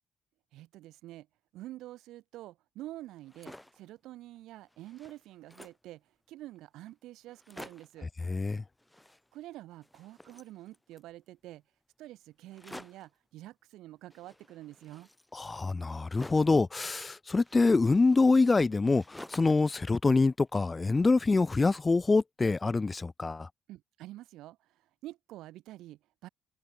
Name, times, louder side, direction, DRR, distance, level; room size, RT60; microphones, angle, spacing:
voice 1, 0.5-1.3 1.5-6.0 6.3-8.1 9.3-11.6 12.0-15.1 23.7-24.6 25.0-26.3, right 16 dB, 70° right, 0.5 m, -47 dB
sound 1, 3.1-3.9 4.4-4.5 4.7-5.9 6.6-6.7 6.9-7.0 7.3-8.0 8.8-9.6 9.8-11.1 12.5-13.2 14.1-16.6 17.4-19.7 20.1-21.0, left 1 dB, 10° left, 5.6 m, -51 dB
voice 2, 8.3-8.6 15.3-23.5, left 3 dB, 25° left, 0.3 m, -25 dB
hypercardioid pair, 55°, 0 cm